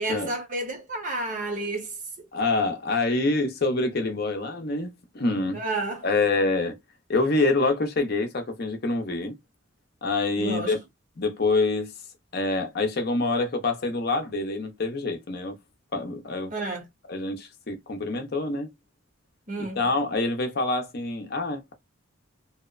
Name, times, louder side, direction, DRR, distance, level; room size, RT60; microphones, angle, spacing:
voice 1, 0.0-2.3 5.5-6.0 10.4-10.8 16.5-16.9 19.5-19.9, right 2 dB, 40° right, 0.7 m, -31 dB
voice 2, 2.3-5.6 6.0-6.8 7.1-9.3 10.0-10.8 11.2-11.9 12.3-15.6 15.9-16.5 17.1-18.7 19.6-21.7, left 3 dB, 50° left, 0.6 m, -26 dB
2.7 x 2.0 x 2.3 m
head